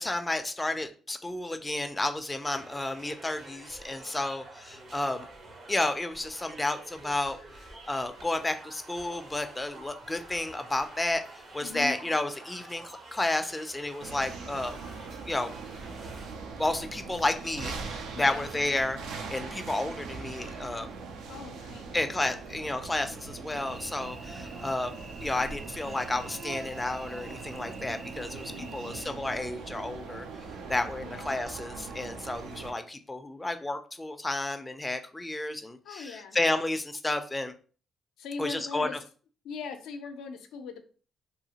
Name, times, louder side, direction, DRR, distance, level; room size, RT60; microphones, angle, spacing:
voice 1, 0.0-5.3 5.7-7.4 7.8-14.8 15.3-15.5 16.6-20.9 21.9-24.9 25.2-30.3 30.7-37.5 38.4-38.9, left 2 dB, 15° left, 7 dB, 0.3 m, -31 dB
sound 1, 2.4-16.3, right 2 dB, 60° right, 0.8 m, -49 dB
voice 2, 11.6-12.0 18.1-18.4 21.3-21.9 28.5-29.0 31.0-31.3 35.8-36.4 38.2-39.0 39.4-40.8, left 5 dB, 85° left, 6 dB, 0.4 m, -40 dB
sound 2, 14.0-32.7, right 4 dB, 90° right, 0.4 m, -41 dB
Cricket / Buzz, 23.6-29.0, right 3 dB, 35° right, 0.6 m, -45 dB
2.8 x 2.4 x 2.8 m, 0.39 s
cardioid pair, 90°, 0 cm